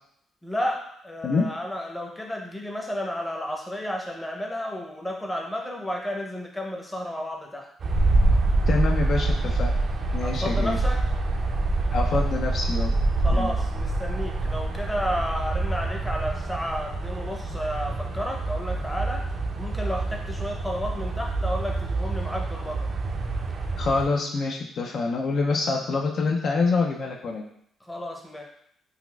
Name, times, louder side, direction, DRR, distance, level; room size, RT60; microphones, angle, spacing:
voice 1, 0.4-7.7 10.2-11.0 13.2-19.2 19.5-22.9 27.9-28.4, equal, 10° left, 0 dB, 0.6 m, -32 dB
sound 1, 7.8-24.1, right 2 dB, 50° right, 0.4 m, -26 dB
voice 2, 8.7-9.7 10.1-10.8 11.9-12.9 13.3-13.5 23.8-27.5, left 3 dB, 60° left, 0 dB, 0.4 m, -26 dB
3.9 x 2.4 x 2.2 m, 0.70 s
cardioid pair, 90°, 0 cm